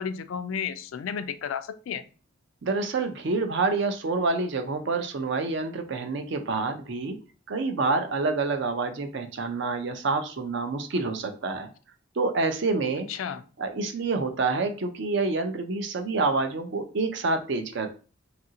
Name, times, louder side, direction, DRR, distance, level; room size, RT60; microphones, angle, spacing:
voice 1, 0.0-2.0 13.1-13.4, left 7 dB, 90° left, 12 dB, 0.3 m, -32 dB
voice 2, 2.6-7.2 7.5-11.7 12.2-13.1 13.6-18.0, right 3 dB, 65° right, 7 dB, 0.5 m, -27 dB
2.8 x 2.5 x 2.7 m, 0.37 s
head